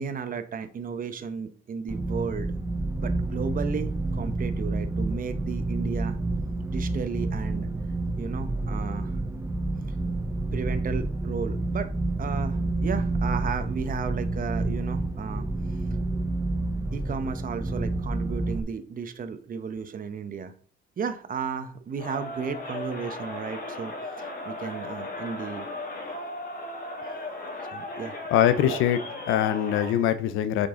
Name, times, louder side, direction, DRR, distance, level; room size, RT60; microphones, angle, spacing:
voice 1, 0.0-2.5 3.0-6.2 6.7-7.7 8.2-9.2 10.5-11.9 12.2-15.5 16.9-20.5 21.0-25.7 27.0-27.2 27.6-28.2 28.6-28.8, right 6 dB, 45° right, 9 dB, 1.0 m, -34 dB
sound 1, 1.9-18.6, right 2 dB, 15° right, 0.9 m, -29 dB
Crowd, 22.0-30.1, left 2 dB, 45° left, 2.0 m, -36 dB
voice 2, 28.3-29.0 29.3-30.7, left 10 dB, 90° left, 12 dB, 0.6 m, -23 dB
6.6 x 5.4 x 3.8 m, 0.43 s
cardioid pair, 90°, 20 cm